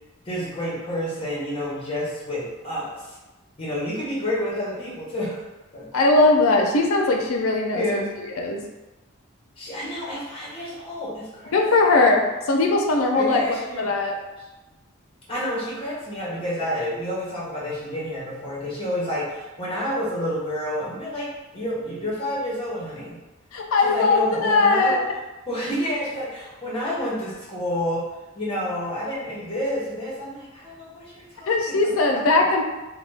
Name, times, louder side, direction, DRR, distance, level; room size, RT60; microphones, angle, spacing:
voice 1, 0.2-3.2 3.6-5.4 5.7-5.9 7.7-8.1 9.6-11.7 13.1-14.0 15.3-21.3 21.5-23.2 23.8-25.0 25.5-28.0 28.3-31.8 32.1-32.2, left 1 dB, 25° left, -7 dB, 1.0 m, -29 dB
voice 2, 5.9-7.8 8.4-8.6 11.5-12.2 12.5-13.4 13.8-14.1 23.5-25.0 31.5-32.6, left 3 dB, 75° left, 1 dB, 0.5 m, -19 dB
2.9 x 2.1 x 3.3 m, 1.1 s
head